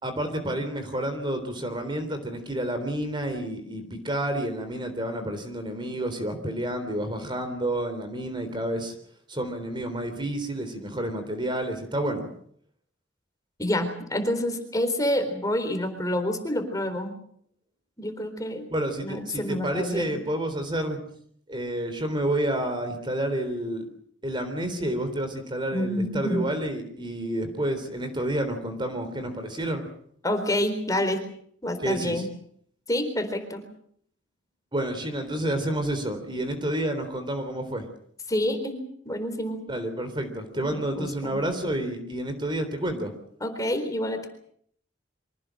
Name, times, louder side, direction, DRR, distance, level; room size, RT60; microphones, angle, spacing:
voice 1, 0.0-9.0 9.3-12.3 18.7-21.0 21.5-23.9 24.2-29.9 31.8-32.2 34.7-37.9 39.7-43.1, right 1 dB, 25° right, 8 dB, 3.7 m, -29 dB
voice 2, 13.6-17.1 18.0-18.7 19.0-20.2 25.7-26.5 30.2-31.2 31.6-32.3 32.9-33.6 38.3-39.6 40.6-41.4 43.4-44.3, left 1 dB, 20° left, 7 dB, 4.0 m, -28 dB
25.0 x 18.0 x 7.7 m, 0.65 s
head